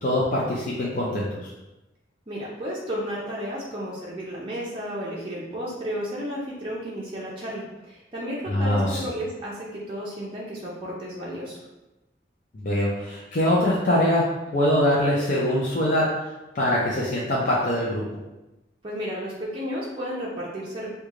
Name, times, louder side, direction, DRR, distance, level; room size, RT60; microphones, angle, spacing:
voice 1, 0.0-1.5 8.5-9.0 12.5-16.1 16.5-18.0, left 1 dB, 45° left, -5 dB, 0.5 m, -23 dB
voice 2, 2.3-11.6 18.8-20.9, equal, 30° right, -6 dB, 0.5 m, -33 dB
3.2 x 2.2 x 3.6 m, 1.0 s
head